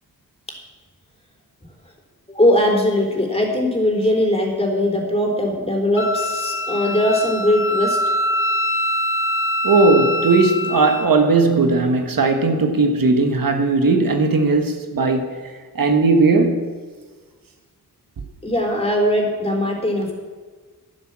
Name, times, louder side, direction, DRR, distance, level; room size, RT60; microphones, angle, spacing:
voice 1, 2.3-8.0 18.4-20.1, left 1 dB, 15° left, 3.9 m, -20 dB
Wind instrument woodwind instrument, 6.0-11.1, left 1 dB, 35° left, 0.7 m, -23 dB
voice 2, 9.6-16.6, right 3 dB, 70° right, 1.5 m, -17 dB
11.0 x 11.0 x 7.5 m
cardioid pair, 75°, 35 cm